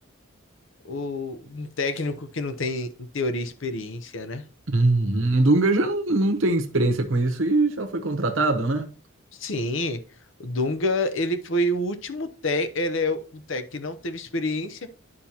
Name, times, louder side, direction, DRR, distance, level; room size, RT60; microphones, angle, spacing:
voice 1, 0.9-4.4 9.4-10.0 10.4-14.9, left 1 dB, 70° left, 0.8 m, -28 dB
voice 2, 4.7-8.9, right 2 dB, 70° right, 1.0 m, -22 dB
9.8 x 5.6 x 2.9 m
head